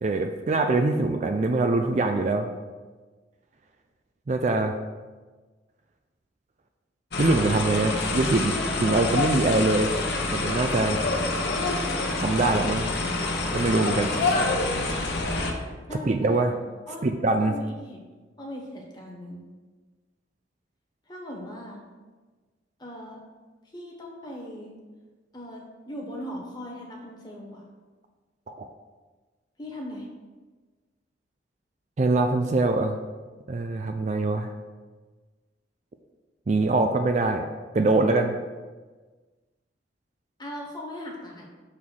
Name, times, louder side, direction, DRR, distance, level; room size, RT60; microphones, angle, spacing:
voice 1, 0.0-2.5 4.3-4.8 7.2-9.9 10.3-11.0 12.2-12.9 13.5-14.1 16.1-16.5 17.0-17.5 28.5-28.7 32.0-33.0 33.5-34.5 36.5-37.5 37.7-38.3, right 2 dB, 35° right, 6 dB, 0.3 m, -23 dB
sound 1, 7.1-15.5, left 2 dB, 60° left, 1.0 m, -27 dB
voice 2, 7.9-8.8 15.9-16.5 16.9-17.0 17.4-18.0 18.4-19.5 21.1-21.8 22.8-23.2 23.7-24.7 25.3-27.6 29.6-30.1 40.4-41.5, equal, 20° left, -1 dB, 1.3 m, -39 dB
6.5 x 3.6 x 6.1 m, 1.3 s
head